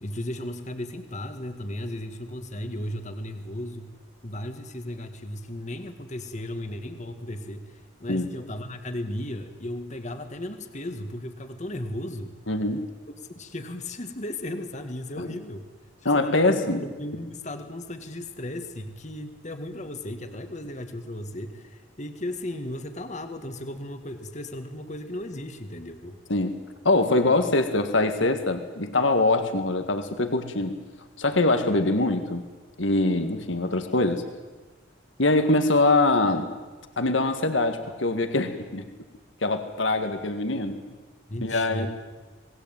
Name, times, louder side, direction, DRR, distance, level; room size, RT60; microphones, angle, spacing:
voice 1, 0.0-3.9 4.2-12.3 13.2-15.7 16.0-26.2 41.3-41.9, left 1 dB, 35° left, 7 dB, 1.9 m, -35 dB
voice 2, 12.5-12.8 15.2-15.3 16.1-16.8 26.3-26.6 26.9-30.8 31.2-32.4 32.8-34.2 35.2-36.5 37.0-38.8 39.4-40.8 41.4-41.9, left 2 dB, 70° left, 7 dB, 1.9 m, -23 dB
28.0 x 20.0 x 9.0 m, 1.3 s
head